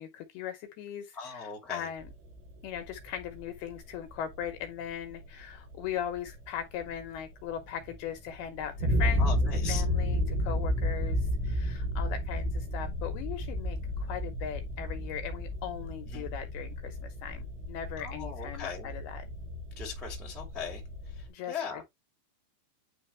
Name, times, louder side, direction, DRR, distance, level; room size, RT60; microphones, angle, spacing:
voice 1, 0.0-2.1 2.6-19.3 21.3-21.8, left 9 dB, 75° left, 2.4 m, -39 dB
voice 2, 1.1-1.9 9.2-9.8 16.1-16.3 18.0-18.9 19.7-20.8 21.1-21.8, left 6 dB, ahead, 0.6 m, -39 dB
sound 1, 2.0-21.3, left 1 dB, 75° right, 3.9 m, -32 dB
9.7 x 3.3 x 3.2 m
omnidirectional pair, 5.2 m